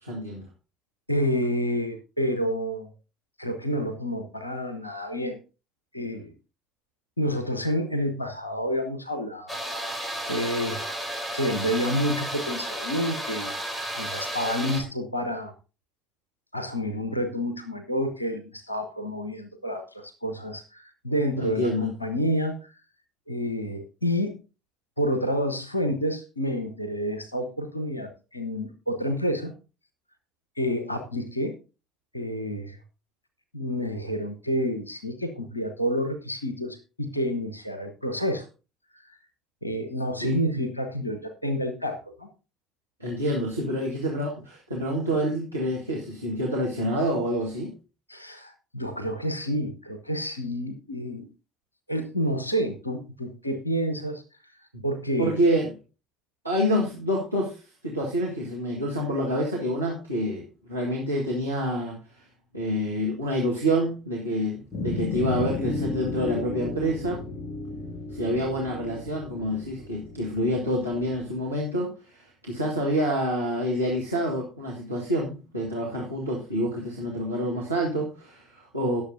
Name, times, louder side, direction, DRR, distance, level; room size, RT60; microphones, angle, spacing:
voice 1, 0.0-0.5 21.4-21.9 40.2-40.4 43.0-47.7 55.2-55.8 56.4-62.0 62.5-67.2 68.1-79.0, equal, 85° right, -5 dB, 1.6 m, -27 dB
voice 2, 1.1-2.9 3.4-5.4 5.9-6.3 7.2-9.5 9.9-10.0 10.3-10.8 11.3-13.5 14.0-15.5 16.5-22.7 23.3-24.4 25.0-29.5 30.6-31.5 32.1-32.8 33.5-38.4 39.1-39.2 39.6-42.3 48.1-51.3 51.9-54.2 54.8-55.4, equal, 85° left, 8 dB, 1.0 m, -29 dB
sound 1, 9.5-14.8, equal, 10° left, 3.8 m, -33 dB
sound 2, 64.7-71.3, left 3 dB, 35° left, 2.4 m, -34 dB
19.0 x 7.0 x 2.7 m, 0.32 s
figure-of-eight pair, 55°, 0 cm